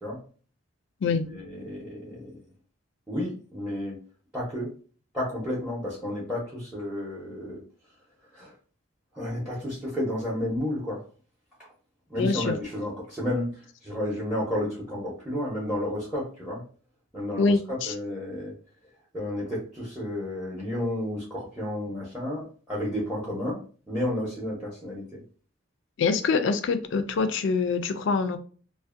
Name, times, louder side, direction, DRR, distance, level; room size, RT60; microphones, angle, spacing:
voice 1, 1.1-2.4 3.1-4.0 4.3-4.7 5.1-7.6 8.3-8.5 9.1-11.0 11.6-11.7 12.1-16.6 17.1-18.5 19.1-25.2, left 1 dB, 5° right, 0.6 m, -32 dB
voice 2, 12.2-12.6 17.4-17.9 26.0-28.4, left 4 dB, 65° left, 0.3 m, -25 dB
2.6 x 2.1 x 2.4 m
head